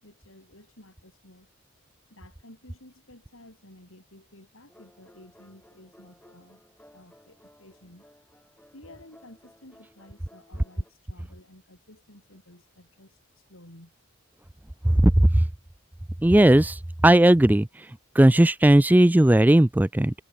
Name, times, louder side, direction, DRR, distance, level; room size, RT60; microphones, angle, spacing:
voice 1, 0.0-1.5 2.1-6.6 6.9-8.1 8.7-13.9, left 1 dB, 75° left, 7.1 m, -52 dB
sound 1, 4.7-10.9, equal, 5° left, 5.3 m, -57 dB
voice 2, 16.2-17.7 18.2-20.1, right 1 dB, 10° right, 0.3 m, -17 dB
head